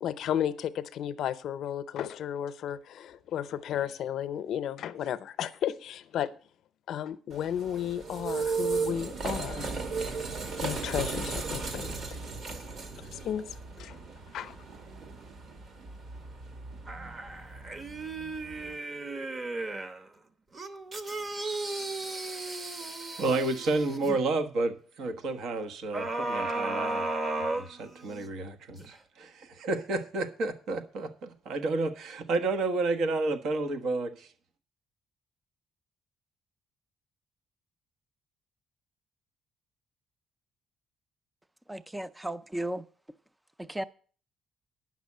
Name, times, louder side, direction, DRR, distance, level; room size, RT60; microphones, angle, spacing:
voice 1, 0.0-6.3 6.9-9.8 10.6-11.9 13.0-13.5 13.8-14.0 14.3-14.6, left 10 dB, 70° left, 0.7 m, -33 dB
sound 1, 7.3-18.7, right 4 dB, 50° right, 2.0 m, -36 dB
sound 2, 16.9-20.0 20.5-24.2 25.9-28.3 28.8-28.9, right 2 dB, 30° right, 1.0 m, -35 dB
voice 2, 23.2-27.1 27.4-34.3, right 3 dB, 70° right, 1.3 m, -31 dB
voice 3, 41.7-42.8 43.6-43.8, right 1 dB, 10° right, 0.5 m, -35 dB
9.7 x 6.1 x 8.5 m
cardioid pair, 135°, 0 cm